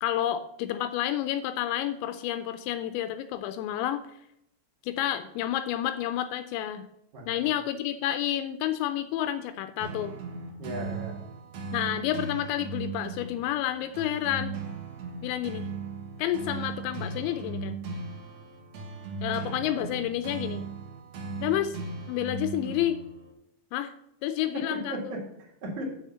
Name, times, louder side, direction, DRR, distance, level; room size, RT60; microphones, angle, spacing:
voice 1, 0.0-4.0 4.8-6.9 7.3-10.1 11.7-14.6 15.2-15.7 16.2-17.8 19.2-20.6 21.4-21.8 22.1-23.0 23.7-23.9 24.2-25.2, left 12 dB, 85° left, 10 dB, 2.8 m, -30 dB
sound 1, 9.8-23.3, right 4 dB, 90° right, 1.5 m, -37 dB
voice 2, 10.6-11.1 24.5-25.8, right 1 dB, 50° right, -1 dB, 2.7 m, -36 dB
6.7 x 6.4 x 6.7 m, 0.79 s
omnidirectional pair, 5.2 m